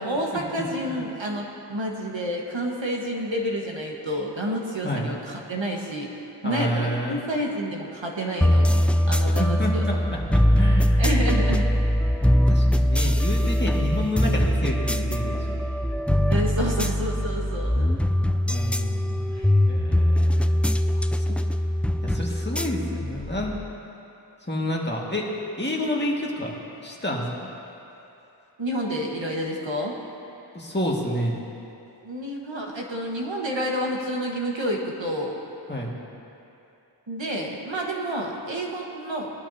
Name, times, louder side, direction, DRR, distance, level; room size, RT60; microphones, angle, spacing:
voice 1, 0.0-6.1 6.4-9.8 11.0-11.7 16.3-17.9 19.3-19.6 28.6-29.9 32.0-35.4 37.1-39.3, equal, 90° right, -1 dB, 1.5 m, -29 dB
voice 2, 6.4-7.2 9.3-10.2 10.5-10.9 12.5-15.6 18.5-19.2 19.7-20.6 20.9-21.4 22.0-23.5 24.5-25.2 25.6-26.6 26.8-27.2 30.5-31.4 35.7-35.9, left 1 dB, 25° left, -3 dB, 1.9 m, -29 dB
sound 1, 8.4-23.7, equal, 5° left, 0.3 m, -22 dB
19.0 x 12.0 x 2.8 m, 2.8 s
wide cardioid pair, 45°, 44 cm